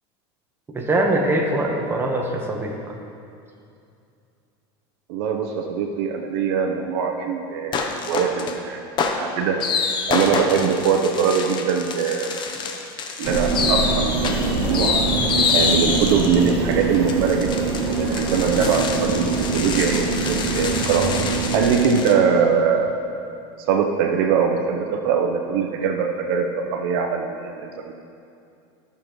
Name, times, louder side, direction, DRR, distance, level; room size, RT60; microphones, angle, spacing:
voice 1, 0.7-2.8, right 1 dB, 15° right, 0 dB, 1.2 m, -22 dB
voice 2, 5.1-12.4 13.2-15.0 15.5-21.1 21.5-23.0 23.7-27.9, right 6 dB, 70° right, 3 dB, 0.8 m, -22 dB
sound 1, 7.7-8.6 9.0-22.1, left 5 dB, 35° left, 0.9 m, -26 dB
sound 2, 13.2-21.7, right 4 dB, 50° right, 1.8 m, -24 dB
14.5 x 6.8 x 3.1 m, 2.5 s
supercardioid pair, 125°, 13 cm